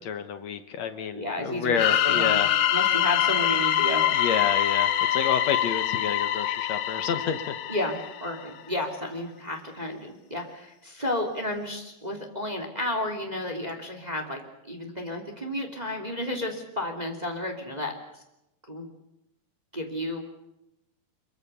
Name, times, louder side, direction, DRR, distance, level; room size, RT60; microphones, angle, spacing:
voice 1, 0.0-2.5 4.1-7.5, left 7 dB, 65° left, 9 dB, 1.7 m, -29 dB
voice 2, 1.1-4.1 7.7-18.2 18.7-18.9 19.7-20.2, left 1 dB, 10° right, 4 dB, 2.2 m, -32 dB
sound 1, 1.7-8.4, left 11 dB, 85° left, 1.5 m, -25 dB
24.5 x 23.0 x 6.9 m, 0.89 s
omnidirectional pair, 4.7 m